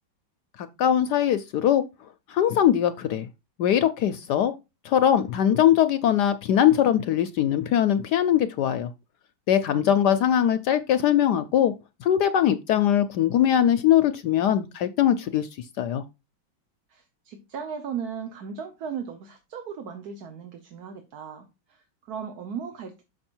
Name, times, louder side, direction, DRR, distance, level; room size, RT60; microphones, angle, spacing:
voice 1, 0.6-1.8 2.3-3.3 3.6-4.5 4.8-8.9 9.5-11.7 12.0-16.0, left 10 dB, 70° left, 1.0 m, -21 dB
voice 2, 9.7-10.1 16.9-23.0, right 7 dB, 55° right, 1.3 m, -37 dB
6.5 x 6.2 x 4.4 m
omnidirectional pair, 2.1 m